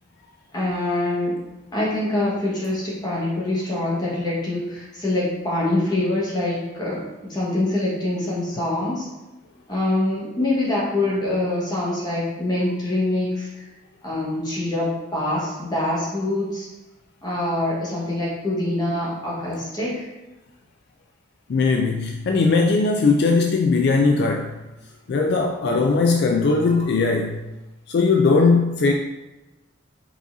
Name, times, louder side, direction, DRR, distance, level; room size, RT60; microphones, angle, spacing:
voice 1, 0.5-1.4 1.7-9.1 9.7-13.6 14.0-16.7 17.2-20.1, left 1 dB, 20° left, -7 dB, 1.3 m, -25 dB
voice 2, 21.5-24.5 25.1-27.4 27.9-28.9, left 4 dB, 55° left, 3 dB, 0.3 m, -19 dB
4.7 x 4.1 x 2.6 m, 1.1 s
head